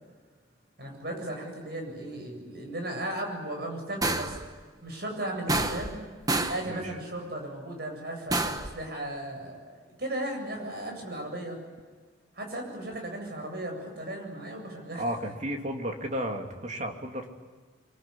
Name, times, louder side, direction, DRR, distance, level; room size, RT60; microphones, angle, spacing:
voice 1, 0.8-4.4 4.8-5.9 6.5-11.6 12.3-15.0, right 1 dB, 55° right, 2 dB, 7.9 m, -36 dB
sound 1, 4.0-4.5 5.5-6.0 6.3-6.7 8.3-8.8, right 2 dB, 20° right, 1.2 m, -28 dB
voice 2, 6.6-7.0 14.9-17.3, equal, 40° right, 3 dB, 2.8 m, -33 dB
24.5 x 24.5 x 10.0 m, 1.4 s
head